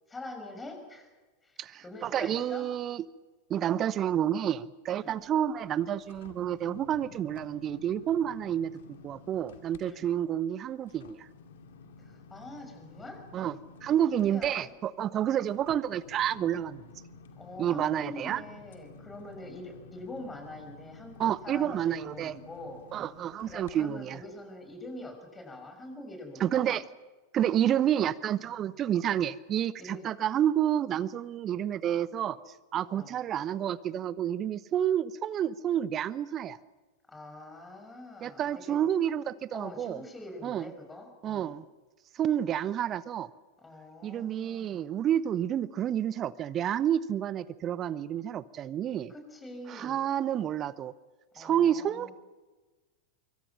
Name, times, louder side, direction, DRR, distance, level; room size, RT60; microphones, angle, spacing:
voice 1, 0.1-1.1 1.4-2.7 4.9-5.2 9.8-10.1 12.0-13.2 14.1-14.7 17.4-22.8 23.4-26.8 28.5-28.7 29.8-30.1 32.8-33.1 37.1-38.9 39.5-41.5 43.6-44.9 49.1-50.0 51.3-52.1, left 1 dB, 15° left, 5 dB, 5.9 m, -45 dB
voice 2, 1.6-3.0 3.5-8.7 9.0-11.3 13.3-13.5 13.8-16.8 17.6-18.4 21.2-22.4 22.9-24.2 26.4-26.8 27.3-32.4 32.7-36.6 38.2-40.0 40.4-40.7 41.2-41.6 42.1-43.3 44.0-49.1 49.7-50.9 51.4-52.1, right 10 dB, 30° right, 19 dB, 0.8 m, -29 dB
sound 1, 5.2-9.8 10.2-23.7 24.2-24.3, left 4 dB, 60° left, 2.4 m, -52 dB
25.5 x 24.0 x 5.9 m, 1.2 s
figure-of-eight pair, 90°, 0 cm